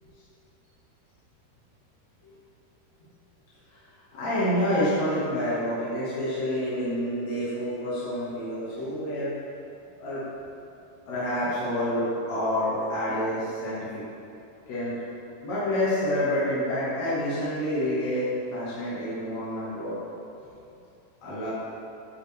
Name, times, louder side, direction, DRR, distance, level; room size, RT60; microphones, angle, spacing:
voice 1, 4.1-9.3 10.0-10.2 11.1-13.9 14.7-14.9 15.4-19.9 21.2-21.5, left 1 dB, 50° left, -11 dB, 2.3 m, -28 dB
10.5 x 6.4 x 3.5 m, 2.7 s
omnidirectional pair, 5.3 m